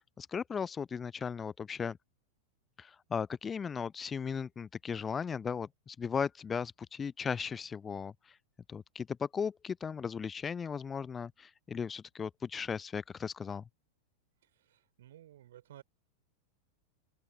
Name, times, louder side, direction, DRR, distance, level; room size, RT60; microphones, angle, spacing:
voice 1, 0.2-2.0 2.8-8.1 8.7-13.6, left 6 dB, 20° left, 0.4 m, -36 dB
voice 2, 14.4-15.8, right 12 dB, 60° right, 4.0 m, -55 dB
open air
figure-of-eight pair, 90°, 0 cm